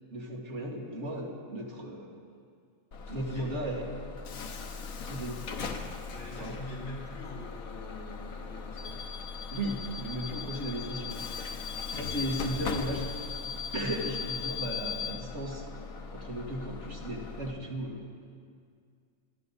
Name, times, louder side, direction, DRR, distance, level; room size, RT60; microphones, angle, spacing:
voice 1, 0.1-2.1 3.1-3.9 5.0-5.5 6.4-6.6 9.5-11.2 11.9-13.1 13.7-15.6 16.1-18.1, right 1 dB, 55° right, -1 dB, 2.3 m, -35 dB
Bus / Alarm, 2.9-17.5, left 5 dB, 85° left, 1.4 m, -38 dB
voice 2, 3.1-3.6 5.6-5.7 6.1-9.2, equal, 55° left, -7 dB, 4.1 m, -44 dB
25.0 x 12.5 x 4.1 m, 2.2 s
omnidirectional pair, 1.4 m